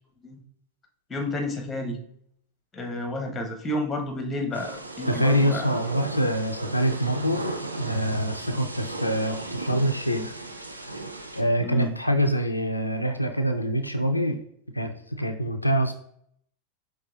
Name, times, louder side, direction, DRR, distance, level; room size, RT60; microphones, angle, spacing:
voice 1, 1.1-2.0 2.7-5.7 11.6-12.0, left 1 dB, 15° left, 4 dB, 0.8 m, -31 dB
Thunder / Rain, 4.5-11.4, right 2 dB, 80° right, 0.4 m, -36 dB
voice 2, 5.1-7.4 7.8-10.3 11.4-14.4 14.7-15.9, equal, 85° left, 5 dB, 0.3 m, -25 dB
4.9 x 3.2 x 2.4 m, 0.67 s
figure-of-eight pair, 90°, 0 cm